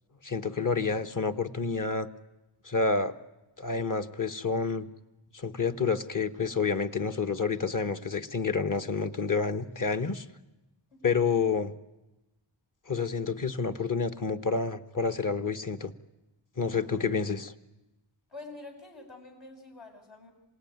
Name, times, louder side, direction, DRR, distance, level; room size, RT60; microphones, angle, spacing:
voice 1, 0.2-2.1 2.6-3.1 3.6-4.9 5.3-10.2 11.0-11.7 12.9-15.9 16.6-17.5, left 4 dB, 40° left, 7 dB, 1.4 m, -29 dB
voice 2, 10.9-11.2 18.3-20.3, left 3 dB, 70° left, 0 dB, 6.7 m, -47 dB
27.0 x 18.0 x 9.6 m, 1.0 s
cardioid pair, 55°, 47 cm